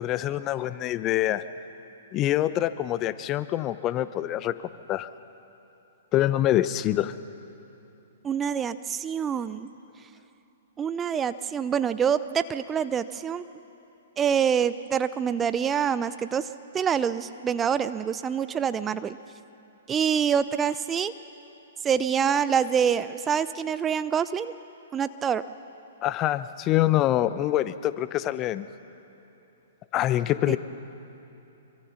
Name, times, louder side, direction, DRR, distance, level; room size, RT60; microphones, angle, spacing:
voice 1, 0.0-1.4 2.1-4.5 4.9-5.1 6.1-7.1 26.0-28.7 29.9-30.6, left 13 dB, 30° left, 14 dB, 0.8 m, -25 dB
voice 2, 8.2-9.7 10.8-13.4 14.2-16.5 16.7-19.2 19.9-21.1 21.8-24.5 24.9-25.4 30.5-30.6, right 7 dB, 20° right, 14 dB, 0.6 m, -26 dB
25.0 x 24.0 x 5.9 m, 3.0 s
figure-of-eight pair, 115°, 0 cm